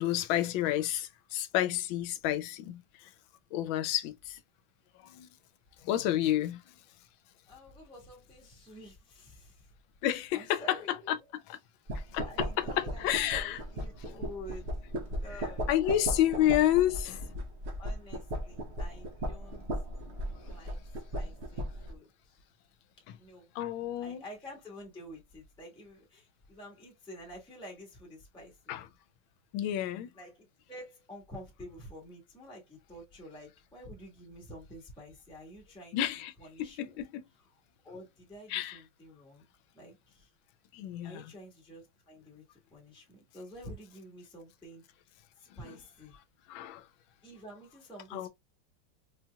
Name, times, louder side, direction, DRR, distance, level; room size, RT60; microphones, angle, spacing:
voice 1, 0.0-2.8 3.5-4.4 5.0-5.3 5.8-6.6 10.0-10.8 11.1-11.2 11.5-11.6 11.9-13.6 15.7-17.3 23.6-24.2 28.7-28.8 29.5-30.1 35.9-36.3 36.6-37.2 38.5-38.8 40.7-41.2 46.5-46.8 48.1-48.3, left 12 dB, 80° left, 1.3 m, -30 dB
voice 2, 7.5-9.7 10.3-11.3 12.2-14.7 15.2-16.1 16.3-16.6 17.8-19.6 20.4-20.8 21.1-22.4 23.2-23.5 24.0-28.8 30.1-36.0 36.4-37.0 37.8-39.4 39.7-40.3 41.0-42.4 42.7-44.8 45.6-46.1 47.2-48.3, equal, 5° left, 1.1 m, -49 dB
sound 1, 11.9-21.9, equal, 50° right, 0.9 m, -37 dB
4.2 x 2.8 x 2.2 m
omnidirectional pair, 2.1 m